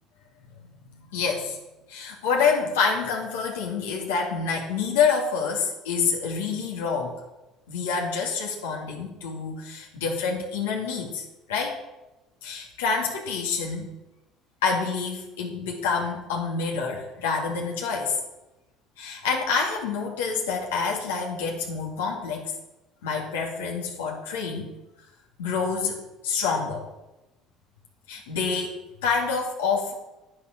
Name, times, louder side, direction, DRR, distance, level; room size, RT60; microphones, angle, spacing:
voice 1, 0.9-1.6 1.9-7.1 7.7-11.2 11.5-11.8 12.4-13.9 14.6-18.2 19.0-22.5 23.0-24.7 25.4-26.0 26.2-26.9 28.1-28.8 29.0-29.9, left 5 dB, 90° left, -1 dB, 2.4 m, -27 dB
9.4 x 9.2 x 5.9 m, 0.98 s
hypercardioid pair, 75°, 0 cm